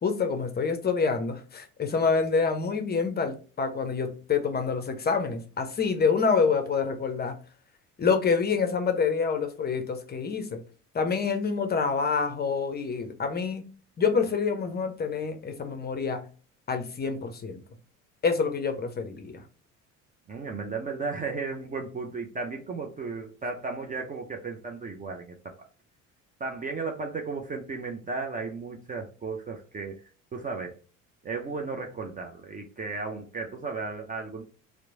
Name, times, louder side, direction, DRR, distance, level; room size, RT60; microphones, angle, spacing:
voice 1, 0.0-7.4 8.0-10.6 10.9-13.6 14.0-16.2 16.7-17.6 18.2-19.4, left 5 dB, 25° left, 0.6 m, -27 dB
voice 2, 20.3-25.3 26.4-30.0 30.3-30.8 31.2-34.4, right 4 dB, 20° right, 0.4 m, -34 dB
2.9 x 2.1 x 2.5 m
hypercardioid pair, 65°, 39 cm